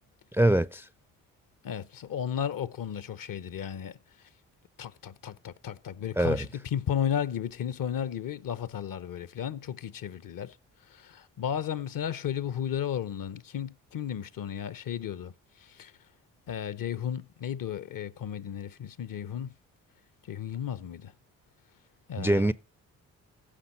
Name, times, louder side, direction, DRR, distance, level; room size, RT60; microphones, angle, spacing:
voice 1, 0.3-0.9 6.2-6.5 22.2-22.5, right 1 dB, 5° right, 0.5 m, -23 dB
voice 2, 1.6-4.0 4.8-10.5 10.9-15.3 15.7-15.9 16.5-19.5 20.3-21.1 22.1-22.5, left 9 dB, 55° left, 0.9 m, -34 dB
15.5 x 5.7 x 4.3 m
hypercardioid pair, 45°, 41 cm